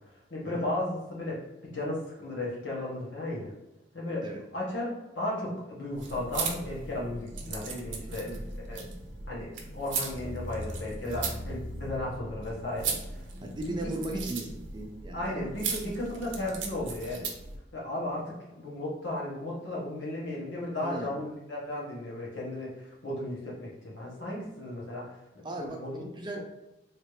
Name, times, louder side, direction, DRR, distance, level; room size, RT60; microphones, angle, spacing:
voice 1, 0.0-3.5 3.9-4.2 4.5-8.3 8.7-8.8 9.3-14.2 15.1-17.3 17.7-26.1 26.3-26.4, left 1 dB, 75° left, -5 dB, 1.3 m, -35 dB
sound 1, 5.9-17.6, right 4 dB, 85° right, 0.6 m, -38 dB
voice 2, 8.1-8.4 11.1-11.3 13.4-15.5 20.8-21.1 25.4-26.4, right 2 dB, 25° right, 2 dB, 0.4 m, -38 dB
sound 2, 10.1-14.7, left 1 dB, 55° left, 1.4 m, -42 dB
3.2 x 2.8 x 3.1 m, 1.0 s
head